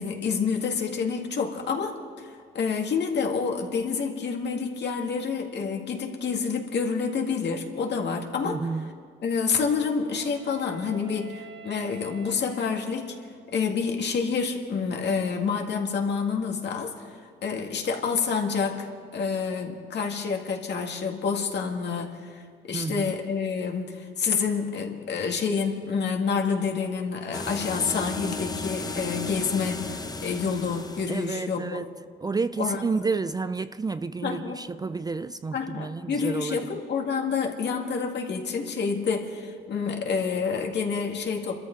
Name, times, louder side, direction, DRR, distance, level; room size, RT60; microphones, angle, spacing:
voice 1, 0.0-2.3 2.5-8.6 9.2-13.2 13.5-16.9 17.4-18.9 19.1-22.3 22.7-31.9 32.6-32.8 34.2-34.6 35.5-41.6, left 5 dB, 60° left, 2.0 m, -28 dB
voice 2, 8.4-9.0 22.7-23.2 31.1-31.9 32.2-36.8, right 4 dB, 20° right, 0.4 m, -30 dB
Wind instrument woodwind instrument, 9.4-13.6, right 5 dB, 75° right, 4.9 m, -49 dB
sound 1, 27.3-31.4, left 3 dB, 20° left, 0.9 m, -34 dB
27.0 x 13.5 x 3.9 m
cardioid pair, 90°, 20 cm